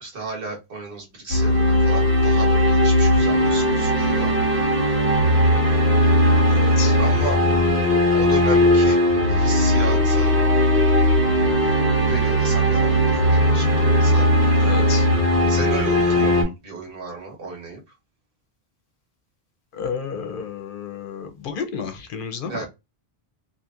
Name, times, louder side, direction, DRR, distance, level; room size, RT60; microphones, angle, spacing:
voice 1, 0.0-4.3 7.0-7.4 8.1-9.0 9.3-10.3 12.0-14.3 15.5-17.8 22.5-22.6, right 3 dB, 60° right, 1.4 m, -33 dB
sound 1, 1.3-16.4, equal, 85° right, 1.4 m, -18 dB
voice 2, 6.5-7.0 14.6-15.0 19.8-22.6, left 6 dB, 60° left, 0.7 m, -31 dB
2.8 x 2.7 x 2.3 m
omnidirectional pair, 1.1 m